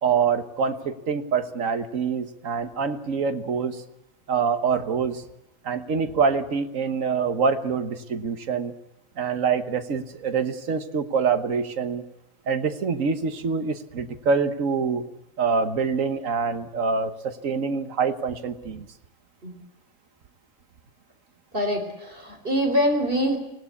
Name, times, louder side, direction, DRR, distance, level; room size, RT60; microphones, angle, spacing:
voice 1, 0.0-3.8 4.3-5.2 5.6-8.7 9.2-12.0 12.5-15.0 15.4-18.9, right 5 dB, 65° right, 9 dB, 1.6 m, -25 dB
voice 2, 21.5-23.4, equal, 40° right, 4 dB, 4.0 m, -24 dB
24.5 x 18.0 x 8.5 m, 0.94 s
omnidirectional pair, 1.5 m